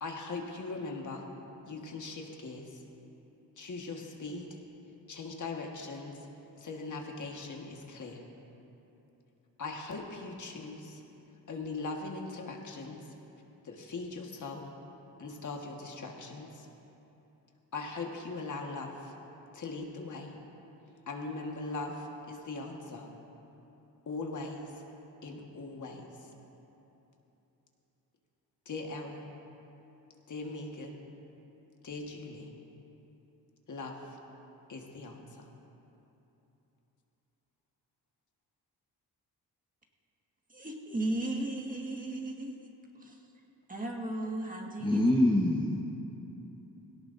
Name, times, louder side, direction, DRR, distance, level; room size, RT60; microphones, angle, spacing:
voice 1, 0.0-1.2 1.7-2.8 3.6-4.5 5.1-6.2 6.6-8.2 9.6-11.0 11.5-13.0 13.6-14.7 15.2-16.7 17.7-19.1 19.5-20.3 21.1-23.1 24.1-24.7 25.2-26.1 28.6-29.3 30.3-31.0 31.8-32.5 33.7-34.0 34.7-35.4, left 3 dB, 50° left, 1 dB, 1.6 m, -40 dB
voice 2, 40.5-42.6 43.0-43.2 43.7-45.0, right 1 dB, 20° right, 0 dB, 1.7 m, -35 dB
voice 3, 44.8-45.8, left 1 dB, 10° left, 0 dB, 1.1 m, -25 dB
17.5 x 17.5 x 2.6 m, 3.0 s
cardioid pair, 95°, 38 cm